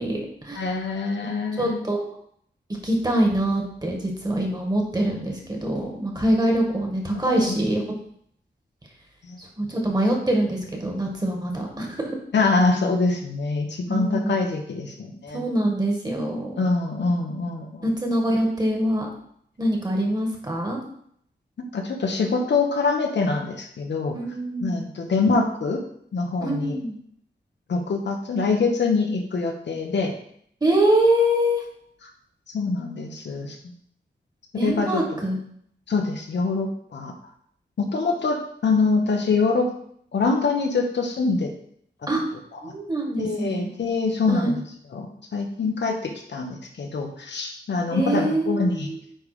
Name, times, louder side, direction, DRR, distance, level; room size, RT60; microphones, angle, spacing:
voice 1, 0.0-0.7 1.2-1.3 1.6-2.0 2.8-7.8 9.4-12.2 13.9-14.3 15.3-16.6 17.8-19.1 19.6-20.8 24.1-24.9 26.4-27.0 30.6-31.6 34.6-35.4 42.1-42.2 42.6-43.7 44.3-44.5 47.9-49.0, right 1 dB, 20° right, 0 dB, 1.7 m, -24 dB
voice 2, 0.5-1.8 7.3-7.6 9.3-9.4 12.3-15.4 16.6-17.8 21.6-24.2 24.6-25.8 26.1-26.7 27.7-30.1 32.5-33.6 34.6-35.0 35.9-37.1 37.8-39.7 40.1-41.5 43.2-44.6 44.9-48.9, left 4 dB, 80° left, 3 dB, 1.2 m, -24 dB
9.2 x 3.5 x 5.0 m, 0.67 s
wide cardioid pair, 150°, 18 cm